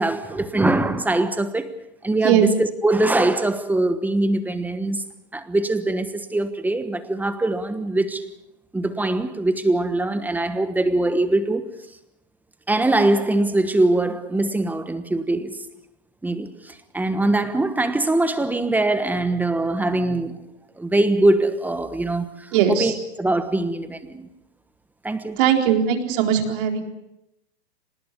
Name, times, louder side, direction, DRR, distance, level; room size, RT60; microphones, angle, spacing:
voice 1, 0.0-1.7 2.0-5.0 5.3-8.2 8.7-11.7 12.7-15.6 16.2-20.4 20.8-22.9 23.2-24.3 25.0-25.4, right 2 dB, 5° right, 1.2 m, -22 dB
voice 2, 22.5-22.9 25.4-26.8, right 9 dB, 55° right, 4.2 m, -19 dB
26.0 x 19.5 x 6.7 m
hypercardioid pair, 140°, 33 cm